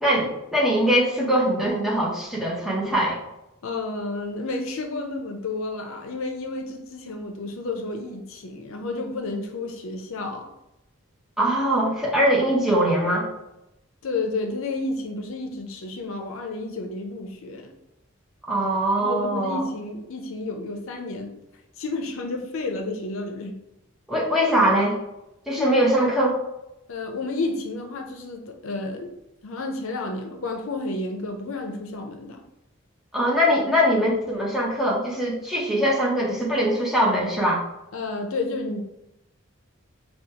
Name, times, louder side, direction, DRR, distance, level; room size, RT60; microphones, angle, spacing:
voice 1, 0.0-3.2 11.4-13.3 18.5-19.6 24.1-25.0 25.5-26.4 33.1-37.6, equal, ahead, -4 dB, 0.7 m, -22 dB
voice 2, 3.6-10.5 14.0-17.7 19.0-21.3 21.8-23.6 25.6-25.9 26.9-29.1 29.4-32.4 37.9-38.8, left 2 dB, 75° left, 4 dB, 0.5 m, -31 dB
4.9 x 2.3 x 2.8 m, 0.89 s
head